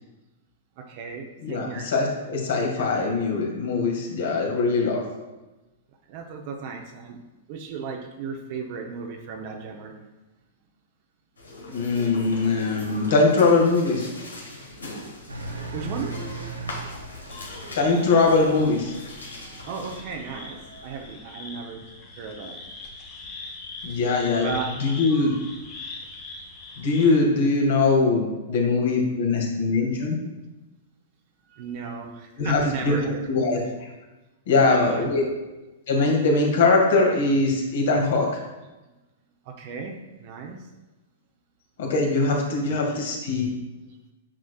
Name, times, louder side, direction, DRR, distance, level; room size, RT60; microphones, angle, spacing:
voice 1, 0.8-1.9 6.1-7.2 7.5-9.9 15.7-16.2 19.6-21.9 22.2-22.6 24.4-24.7 28.5-28.6 31.5-33.5 34.5-35.3 39.5-40.7 42.5-42.6, right 5 dB, 45° right, 2 dB, 0.8 m, -35 dB
voice 2, 1.4-5.0 11.7-14.1 17.8-18.9 23.8-24.5 24.8-25.3 26.8-30.2 32.4-32.9 33.3-33.6 34.5-35.2 35.9-38.3 41.8-43.5, left 3 dB, 60° left, 0 dB, 1.9 m, -21 dB
sound 1, 11.4-20.0, left 1 dB, 80° left, 1.4 m, -40 dB
Engine, 15.3-21.1, right 3 dB, 85° right, 1.1 m, -39 dB
sound 2, 17.3-27.1, left 3 dB, 40° left, 1.8 m, -41 dB
8.7 x 6.3 x 2.4 m, 1.1 s
figure-of-eight pair, 105°, 0 cm